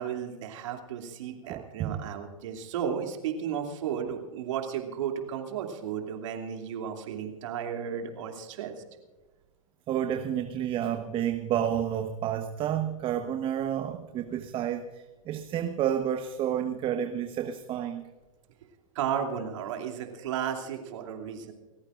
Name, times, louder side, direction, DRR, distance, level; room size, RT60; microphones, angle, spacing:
voice 1, 0.0-8.8 18.9-21.5, right 8 dB, 60° right, 3 dB, 2.8 m, -34 dB
voice 2, 1.5-2.0 9.9-14.9 15.3-18.0, right 10 dB, 30° right, 7 dB, 1.1 m, -30 dB
29.5 x 14.5 x 2.6 m, 1.2 s
hypercardioid pair, 110°, 18 cm